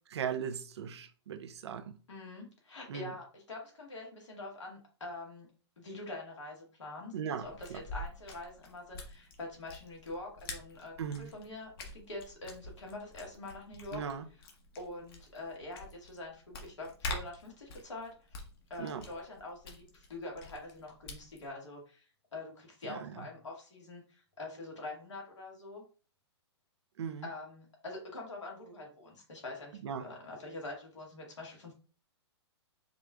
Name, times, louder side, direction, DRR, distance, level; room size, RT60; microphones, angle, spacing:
voice 1, 0.1-2.0 2.9-3.1 7.1-7.8 11.0-11.3 13.9-14.2 18.8-19.0 22.9-23.3 27.0-27.3 29.8-30.0, right 7 dB, 70° right, 0.6 m, -38 dB
voice 2, 2.1-5.5 5.8-14.0 14.8-18.4 18.7-22.1 22.3-25.8 27.2-31.7, left 2 dB, 85° left, 2.0 m, -45 dB
sound 1, 7.4-21.5, left 2 dB, 55° left, 1.2 m, -47 dB
5.0 x 3.1 x 2.4 m
hypercardioid pair, 125°, 15 cm